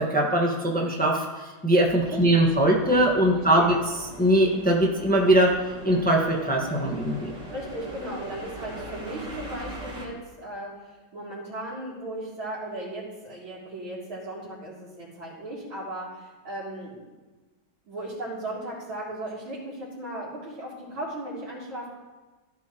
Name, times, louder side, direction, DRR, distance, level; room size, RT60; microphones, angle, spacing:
voice 1, 0.0-5.5 5.8-7.3, right 1 dB, 5° left, -2 dB, 1.3 m, -21 dB
sound 1, 1.8-10.1, right 1 dB, 40° right, 2.8 m, -41 dB
voice 2, 2.1-2.5 3.3-3.7 7.5-17.0 17.9-21.9, right 1 dB, 85° right, -6 dB, 4.2 m, -36 dB
16.0 x 10.5 x 3.1 m, 1.2 s
omnidirectional pair, 2.1 m